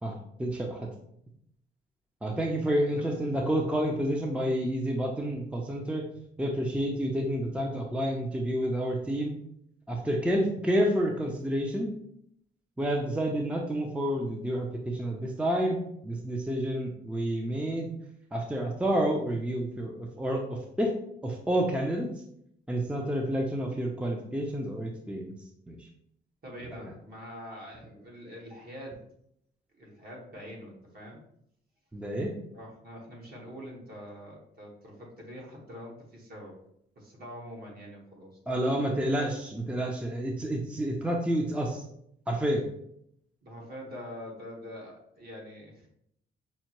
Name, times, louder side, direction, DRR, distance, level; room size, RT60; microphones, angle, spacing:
voice 1, 0.0-0.9 2.2-6.1 6.4-9.3 9.9-12.0 12.8-17.9 18.3-21.0 21.2-22.1 22.7-25.3 25.7-25.8 31.9-32.4 38.5-41.8 42.3-42.7, equal, 5° right, 1 dB, 0.5 m, -29 dB
voice 2, 2.7-3.1 13.3-13.4 26.4-29.0 29.8-31.2 32.5-36.6 36.9-38.9 43.4-45.9, equal, 50° right, -2 dB, 1.5 m, -44 dB
5.5 x 2.1 x 3.0 m, 0.73 s
cardioid pair, 90°, 20 cm